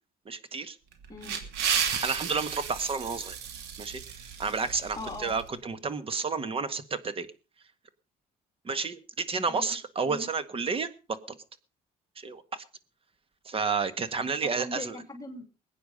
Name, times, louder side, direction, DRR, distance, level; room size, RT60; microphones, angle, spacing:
voice 1, 0.2-0.8 1.8-3.4 3.8-4.0 4.4-7.3 8.6-10.9 11.3-11.4 12.2-12.6 13.4-14.9, right 5 dB, 35° right, 13 dB, 1.7 m, -31 dB
sound 1, 0.9-5.4, right 7 dB, 85° right, 2.9 m, -33 dB
voice 2, 5.0-5.4 9.5-9.8 10.1-10.3 14.6-15.5, left 2 dB, 20° left, 5 dB, 2.9 m, -40 dB
21.5 x 9.3 x 5.4 m, 0.35 s
cardioid pair, 110°, 17 cm